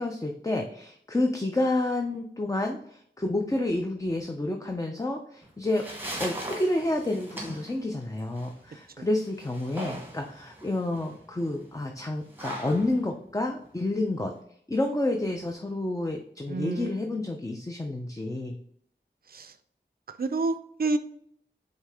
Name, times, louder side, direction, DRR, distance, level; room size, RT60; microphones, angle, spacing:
voice 1, 0.0-5.9 6.2-14.3 14.7-18.6, left 2 dB, 20° left, 0.5 m, -29 dB
sound 1, 5.4-14.4, right 1 dB, 10° right, 1.2 m, -41 dB
voice 2, 16.5-17.1 19.3-19.5 20.2-21.0, right 3 dB, 55° right, 0.4 m, -29 dB
4.9 x 2.7 x 3.5 m
wide cardioid pair, 55°, 19 cm